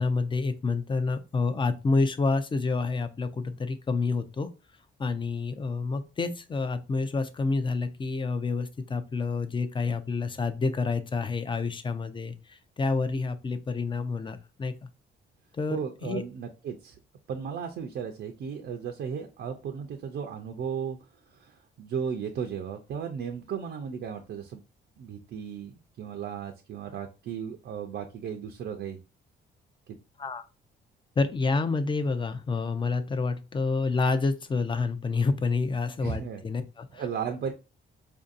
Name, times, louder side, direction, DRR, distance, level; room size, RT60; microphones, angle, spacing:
voice 1, 0.0-4.5 5.0-12.3 12.8-14.9 15.6-16.2 30.2-30.4 31.2-37.0, left 4 dB, 25° left, 9 dB, 0.5 m, -28 dB
voice 2, 15.7-17.0 17.3-21.0 21.3-24.6 25.0-29.0 36.0-36.4 36.9-37.5, right 7 dB, 60° right, 4 dB, 0.5 m, -35 dB
4.4 x 2.6 x 2.4 m, 0.31 s
cardioid pair, 90°, 20 cm